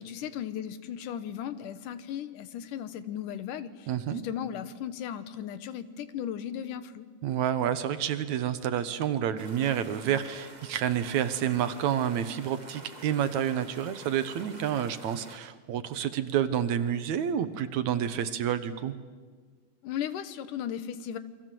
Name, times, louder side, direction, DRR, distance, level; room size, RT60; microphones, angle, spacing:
voice 1, 0.0-7.1 19.8-21.2, left 9 dB, 80° left, 12 dB, 2.7 m, -36 dB
voice 2, 3.9-4.2 7.2-18.9, right 9 dB, 70° right, 11 dB, 2.2 m, -29 dB
sound 1, 9.4-15.4, right 2 dB, 25° right, 0.9 m, -48 dB
28.0 x 24.0 x 7.7 m, 1.5 s
omnidirectional pair, 3.6 m